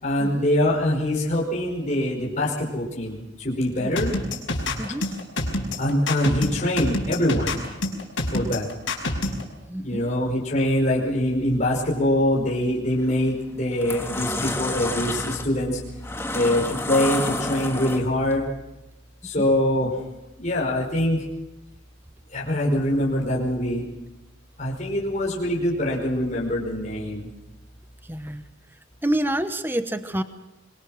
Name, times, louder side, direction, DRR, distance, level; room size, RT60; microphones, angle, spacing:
voice 1, 0.0-4.1 5.8-7.6 8.3-8.7 9.8-15.8 16.3-18.4 19.2-20.0 20.4-21.2 22.3-23.9 24.6-27.3, left 1 dB, 35° left, -3 dB, 5.1 m, -24 dB
sound 1, 4.0-9.4, left 2 dB, 65° left, 5.5 m, -26 dB
voice 2, 4.8-5.1 9.7-10.1 19.4-19.5 28.0-28.4 29.0-30.2, right 1 dB, 10° right, 9 dB, 1.0 m, -28 dB
sound 2, 12.9-13.2 13.6-18.3, left 2 dB, 10° left, 1.8 m, -29 dB
26.0 x 22.5 x 6.4 m, 0.97 s
head